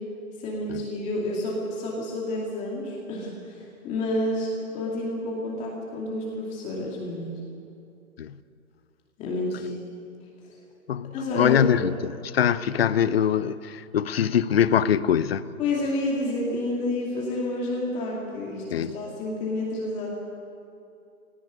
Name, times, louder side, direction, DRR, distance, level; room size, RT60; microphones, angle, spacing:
voice 1, 0.4-7.4 9.2-9.9 10.4-10.6 11.1-11.9 15.6-20.1, left 1 dB, 15° left, -3 dB, 2.6 m, -29 dB
voice 2, 10.9-15.4 18.7-19.0, left 9 dB, 45° left, 16 dB, 0.8 m, -23 dB
18.0 x 17.5 x 9.4 m, 2.6 s
hypercardioid pair, 155°, 43 cm